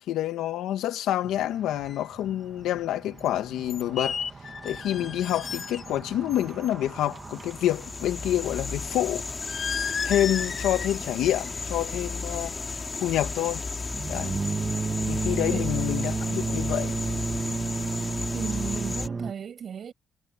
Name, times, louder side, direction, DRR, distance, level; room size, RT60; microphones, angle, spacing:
voice 1, 0.0-4.2 4.6-9.3 10.0-12.6 13.0-13.6 14.1-14.3 15.1-16.9, left 12 dB, 85° left, 2.0 m, -27 dB
sound 1, 1.2-19.3, right 4 dB, 30° right, 1.8 m, -34 dB
sound 2, 1.9-2.0 3.2-3.3 3.7-6.0 6.3-6.7 9.4-11.0 11.3-11.6 11.9-12.2, left 6 dB, 45° left, 3.7 m, -34 dB
sound 3, 6.9-19.1, left 3 dB, 30° left, 3.9 m, -34 dB
voice 2, 18.3-19.9, right 7 dB, 55° right, 7.3 m, -35 dB
cardioid pair, 90°, 0 cm